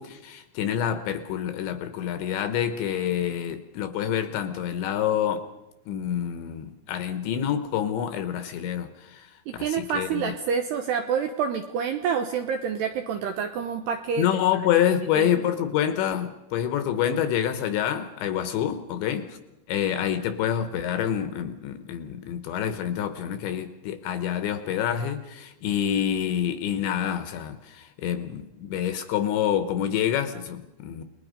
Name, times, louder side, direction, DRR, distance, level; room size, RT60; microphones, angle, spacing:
voice 1, 0.0-5.5 5.9-10.3 14.2-19.4 19.7-31.0, left 10 dB, 75° left, 9 dB, 3.0 m, -27 dB
voice 2, 9.5-14.3 15.2-15.4, right 7 dB, 80° right, 5 dB, 2.5 m, -28 dB
29.5 x 20.5 x 5.2 m, 0.96 s
omnidirectional pair, 6.0 m